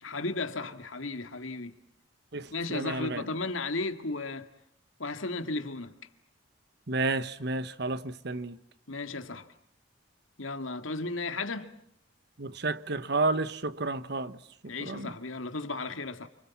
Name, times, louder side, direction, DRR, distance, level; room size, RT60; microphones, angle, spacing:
voice 1, 0.0-1.7 2.5-4.5 5.0-6.0 8.9-9.5 10.4-11.7 14.7-16.3, left 3 dB, 85° left, 2.2 m, -34 dB
voice 2, 2.3-3.3 6.9-8.6 12.4-14.4 14.8-15.1, right 3 dB, 55° right, 1.1 m, -31 dB
29.0 x 26.5 x 7.3 m
head